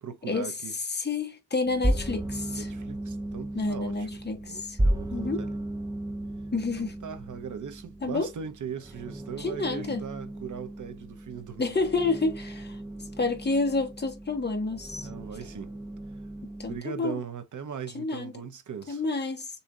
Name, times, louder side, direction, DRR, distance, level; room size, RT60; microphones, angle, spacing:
voice 1, 0.0-0.8 2.6-4.1 4.4-5.6 6.8-11.8 15.0-15.7 16.1-16.2 16.7-19.0, right 7 dB, 70° right, 0.9 m, -39 dB
voice 2, 0.9-2.7 3.5-4.8 5.1-5.4 6.5-7.0 8.0-8.3 9.4-10.0 11.6-12.8 13.2-15.1 16.6-17.2 17.9-18.3 18.9-19.5, left 3 dB, 30° left, 1.4 m, -29 dB
sound 1, 1.7-16.8, right 1 dB, 10° right, 0.7 m, -34 dB
6.8 x 2.8 x 2.4 m
wide cardioid pair, 115°, 32 cm